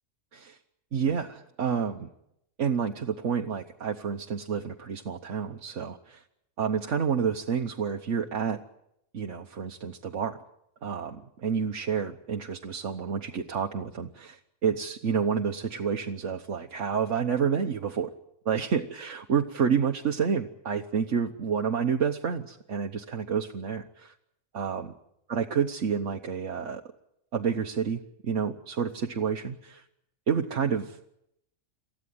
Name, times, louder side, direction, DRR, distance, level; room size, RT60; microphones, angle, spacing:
voice 1, 0.9-2.1 2.6-6.2 6.6-8.6 9.1-10.4 10.8-18.1 18.4-24.1 24.5-24.9 25.3-26.8 27.3-29.8 30.3-31.0, right 6 dB, 60° right, 3 dB, 1.4 m, -29 dB
28.0 x 14.5 x 9.5 m, 0.80 s
omnidirectional pair, 1.5 m